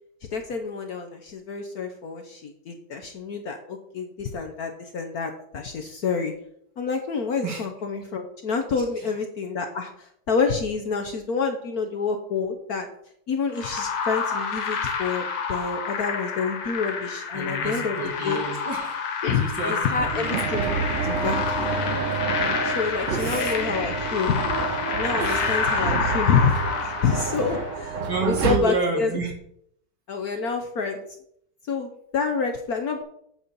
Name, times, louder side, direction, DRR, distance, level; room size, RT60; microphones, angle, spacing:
voice 1, 0.3-6.3 6.8-12.9 13.3-18.0 18.2-18.4 19.2-20.7 21.0-21.8 22.6-24.4 24.9-29.2 30.1-31.0 31.7-33.0, left 5 dB, 60° left, 5 dB, 1.0 m, -28 dB
voice 2, 8.8-9.1 17.3-19.0 19.3-20.3 21.0-21.1 23.1-23.5 24.1-25.6 28.1-29.3, right 4 dB, 55° right, 0 dB, 2.7 m, -31 dB
sound 1, 13.6-27.9, left 5 dB, 75° left, 2.0 m, -29 dB
sound 2, 20.0-28.6, right 5 dB, 80° right, 0.6 m, -29 dB
9.1 x 4.2 x 6.8 m, 0.70 s
omnidirectional pair, 2.3 m